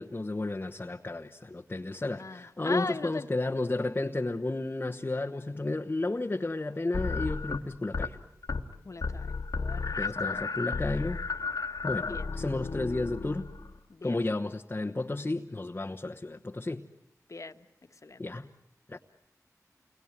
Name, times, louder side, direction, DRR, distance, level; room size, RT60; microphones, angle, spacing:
voice 1, 0.0-8.2 10.0-11.2 11.8-13.5 14.0-16.9 18.2-18.5 18.9-19.0, left 2 dB, 30° left, 3 dB, 1.2 m, -32 dB
voice 2, 2.2-3.3 8.8-11.0 12.1-12.3 13.9-14.2 17.3-17.7 18.0-18.3, left 3 dB, 55° left, 7 dB, 1.6 m, -39 dB
sound 1, 6.9-8.1 8.4-8.7 9.0-13.8, left 4 dB, 80° left, 1.7 m, -33 dB
29.0 x 22.0 x 9.3 m, 0.77 s
wide cardioid pair, 75°, 6 cm